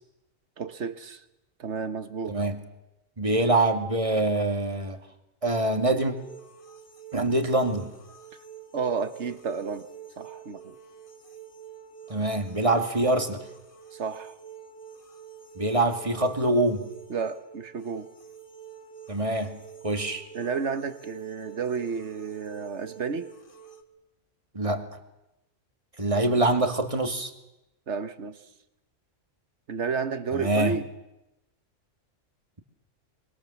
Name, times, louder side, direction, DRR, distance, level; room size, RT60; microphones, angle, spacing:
voice 1, 0.6-1.2 1.6-2.4 8.7-9.9 10.2-10.8 13.9-14.4 17.1-18.1 20.3-23.3 26.1-26.3 27.9-28.4 29.7-30.9, right 5 dB, 60° right, 11 dB, 1.6 m, -31 dB
voice 2, 2.3-2.6 3.2-5.0 5.4-6.2 7.1-7.9 12.1-13.4 15.6-16.9 19.1-20.2 24.5-24.9 26.0-27.3 30.3-30.8, right 2 dB, 25° right, 6 dB, 2.1 m, -25 dB
sound 1, 6.2-23.8, right 7 dB, 40° left, 2.0 m, -47 dB
25.0 x 24.5 x 7.3 m, 0.91 s
omnidirectional pair, 1.3 m